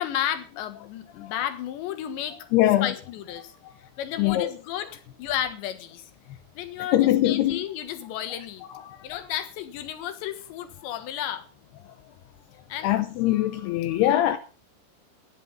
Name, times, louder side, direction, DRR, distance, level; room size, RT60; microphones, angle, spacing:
voice 1, 0.0-2.4 2.8-3.5 4.0-6.1 6.6-8.7 9.0-11.5 12.7-12.9 14.1-14.3, left 11 dB, 70° left, 3.5 m, -32 dB
voice 2, 2.5-2.9 3.6-3.7 4.2-4.5 6.9-7.7 8.7-9.0 12.8-14.4, left 14 dB, 85° left, 2.3 m, -22 dB
14.5 x 10.5 x 5.6 m
omnidirectional pair, 5.7 m